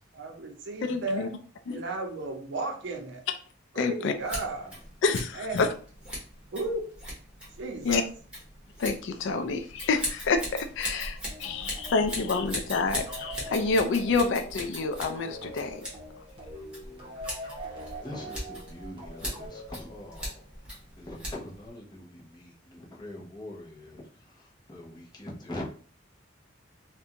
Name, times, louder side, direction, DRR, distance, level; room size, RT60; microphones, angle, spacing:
voice 1, 0.1-1.3 1.7-3.2 3.7-4.7 5.1-5.6 6.5-6.8 7.6-8.0, right 2 dB, 60° right, 3 dB, 0.6 m, -34 dB
voice 2, 0.8-1.3 1.7-1.8 3.8-4.1 5.0-5.7 7.8-8.0 8.8-10.4 10.8-15.8, left 4 dB, 65° left, 7 dB, 0.3 m, -28 dB
Scissors, 4.2-21.7, equal, 5° right, 1.0 m, -40 dB
voice 3, 11.2-11.8 16.8-17.2 17.7-20.4 21.0-25.7, left 1 dB, 20° left, -4 dB, 0.7 m, -43 dB
sound 1, 11.2-20.5, equal, 25° right, 0.7 m, -43 dB
2.5 x 2.2 x 2.8 m, 0.43 s
head